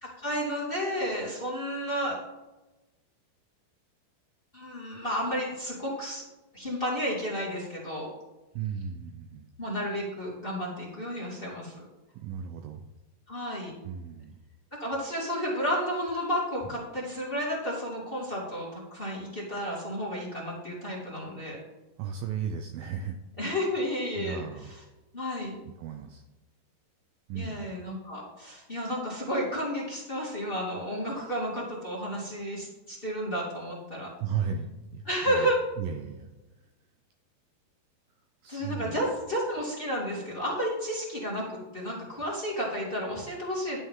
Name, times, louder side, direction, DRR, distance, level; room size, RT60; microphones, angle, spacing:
voice 1, 0.0-2.2 4.5-6.3 6.5-8.1 9.6-11.8 13.3-13.7 14.8-21.6 23.4-24.7 25.1-25.6 27.3-34.1 35.1-35.6 38.5-43.8, equal, 15° left, -5 dB, 2.0 m, -32 dB
voice 2, 8.5-9.5 12.1-12.9 13.8-14.4 22.0-23.2 24.2-24.7 25.8-26.2 27.3-27.8 34.2-35.5 35.8-36.3 36.6-36.7 38.4-39.1, right 7 dB, 80° right, 5 dB, 2.2 m, -35 dB
11.5 x 9.9 x 3.7 m, 1.1 s
omnidirectional pair, 4.7 m